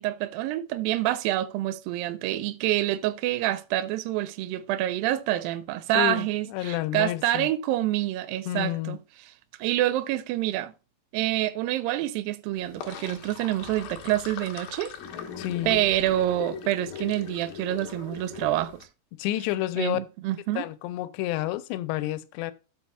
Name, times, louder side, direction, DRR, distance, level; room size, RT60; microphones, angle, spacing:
voice 1, 0.0-9.0 9.6-10.7 11.1-15.0 15.7-18.9 19.8-20.7, right 14 dB, 85° right, 2.0 m, -27 dB
voice 2, 5.9-7.5 8.5-9.0 15.4-15.8 19.1-20.0 20.6-22.5, left 15 dB, 90° left, 2.7 m, -30 dB
Sink (filling or washing), 12.6-18.8, left 7 dB, 65° left, 2.9 m, -39 dB
14.5 x 5.4 x 2.3 m
omnidirectional pair, 4.8 m